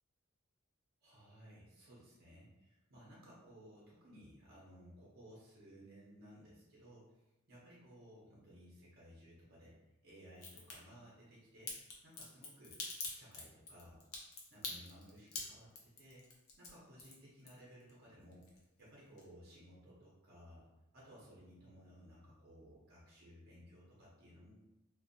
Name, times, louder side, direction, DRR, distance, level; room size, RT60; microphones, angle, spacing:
voice 1, 1.0-7.1 7.5-9.7 10.0-11.7 12.0-12.7 13.1-14.0 14.5-16.2 16.6-18.4 18.8-20.7 20.9-24.6, equal, 45° right, -6 dB, 0.6 m, -58 dB
Crack, 10.3-10.7 11.7-17.9 18.2-18.9 19.2-19.3, left 3 dB, 85° left, 0.6 m, -45 dB
2.5 x 2.1 x 2.6 m, 0.99 s
head